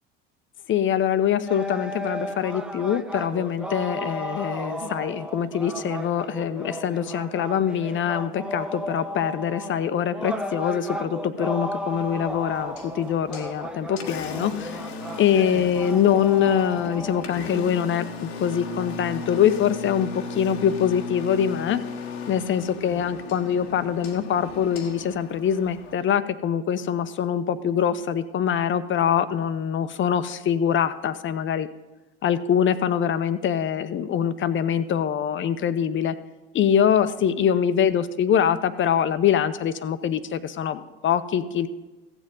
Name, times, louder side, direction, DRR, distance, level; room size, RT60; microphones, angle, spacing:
voice 1, 0.7-14.8 15.2-21.8 22.3-31.7 32.2-36.2 36.5-41.7, left 8 dB, 40° left, 12 dB, 0.8 m, -24 dB
sound 1, 1.5-17.2, equal, 5° right, 0.5 m, -34 dB
Engine, 11.9-25.9, left 4 dB, 80° left, 1.1 m, -36 dB
15.5 x 7.5 x 3.8 m, 1.1 s
hypercardioid pair, 75°, 31 cm